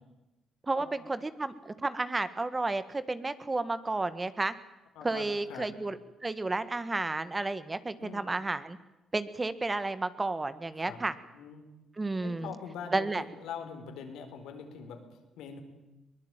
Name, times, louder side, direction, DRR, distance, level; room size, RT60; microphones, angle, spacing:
voice 1, 0.6-4.5 5.0-6.0 6.2-8.8 9.1-11.1 12.0-12.5 12.9-13.2, right 2 dB, 20° right, 13 dB, 1.6 m, -32 dB
voice 2, 5.0-5.7 8.0-8.2 10.8-11.0 11.3-11.6 12.2-15.6, left 6 dB, 90° left, 5 dB, 4.4 m, -43 dB
22.5 x 20.0 x 9.0 m, 0.99 s
cardioid pair, 90°, 0 cm